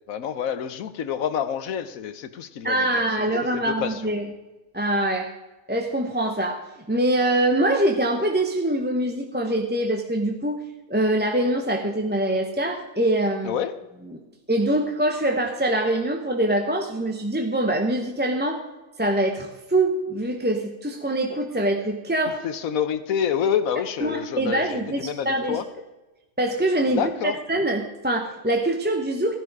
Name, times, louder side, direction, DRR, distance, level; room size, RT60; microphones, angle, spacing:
voice 1, 0.1-4.2 13.4-13.7 22.4-25.6 27.0-27.4, left 8 dB, 75° left, 12 dB, 1.2 m, -28 dB
voice 2, 2.6-4.3 4.7-5.3 5.7-6.6 6.9-10.6 10.9-13.6 14.1-14.2 14.5-18.6 19.0-22.4 24.0-25.6 26.4-27.1 27.5-29.4, right 1 dB, 10° right, 3 dB, 0.8 m, -24 dB
15.5 x 11.0 x 4.8 m, 1.1 s
omnidirectional pair, 1.5 m